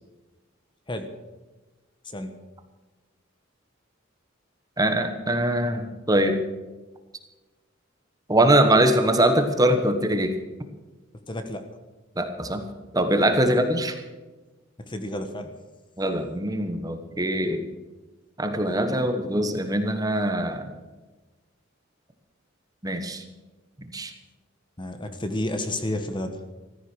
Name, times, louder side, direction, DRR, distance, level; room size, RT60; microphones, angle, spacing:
voice 1, 4.8-6.4 8.3-10.3 12.2-12.6 12.9-14.0 16.0-17.6 18.4-20.7 22.8-23.2 23.9-24.1, right 1 dB, 20° right, 7 dB, 1.4 m, -22 dB
voice 2, 11.3-11.7 13.5-13.6 14.8-15.5 24.8-26.4, left 1 dB, 25° left, 7 dB, 1.3 m, -31 dB
15.0 x 14.0 x 6.4 m, 1.2 s
head